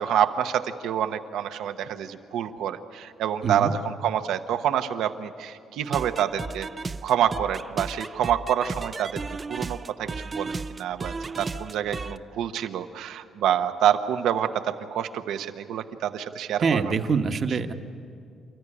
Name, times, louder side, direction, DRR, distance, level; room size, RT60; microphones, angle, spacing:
voice 1, 0.0-6.7 7.0-9.2 9.5-16.8, right 9 dB, 85° right, 8 dB, 1.1 m, -27 dB
sound 1, 5.9-12.2, right 4 dB, 30° right, 0.6 m, -34 dB
voice 2, 16.6-17.7, right 5 dB, 50° right, 7 dB, 1.3 m, -24 dB
29.0 x 14.0 x 10.0 m, 2.4 s
cardioid pair, 90°, 0 cm